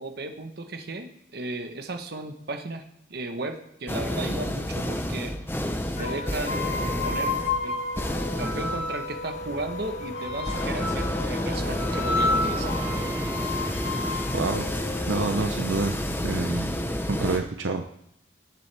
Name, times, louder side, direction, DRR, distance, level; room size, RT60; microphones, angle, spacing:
voice 1, 0.0-5.4 6.0-7.4 7.6-7.9 8.4-12.8, right 2 dB, 55° right, 6 dB, 1.2 m, -35 dB
sound 1, 3.9-17.4, left 1 dB, 10° left, 0.9 m, -30 dB
sound 2, 6.0-13.1, left 2 dB, 40° left, 0.4 m, -38 dB
sound 3, 6.5-9.3 10.1-11.2 11.8-15.7, left 2 dB, 60° left, 3.3 m, -31 dB
voice 2, 14.3-14.7 15.1-16.7 17.1-17.8, right 3 dB, 80° right, 5 dB, 0.7 m, -28 dB
17.5 x 7.1 x 3.5 m, 0.76 s
head